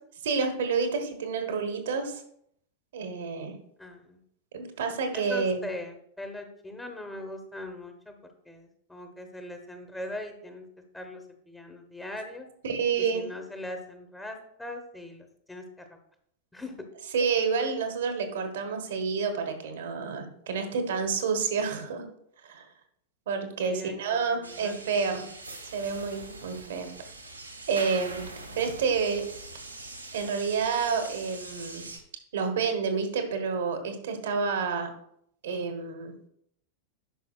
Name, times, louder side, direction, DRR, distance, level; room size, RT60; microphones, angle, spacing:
voice 1, 0.2-2.2 2.9-3.5 4.5-5.6 12.6-13.2 17.1-22.0 22.4-22.6 23.3-25.2 25.7-26.9 27.7-28.2 28.6-29.2 30.1-31.8 32.3-34.9 35.4-36.1, right 5 dB, 60° right, 6 dB, 1.2 m, -29 dB
voice 2, 3.8-4.2 5.1-8.1 8.4-10.6 10.9-12.5 13.0-15.8 16.5-16.7 23.6-24.0 24.3-24.7 25.2-25.3, left 1 dB, 10° left, 5 dB, 1.1 m, -40 dB
sound 1, 24.4-32.0, right 2 dB, 80° right, 1.0 m, -43 dB
10.5 x 5.6 x 2.4 m, 0.70 s
figure-of-eight pair, 90°, 0 cm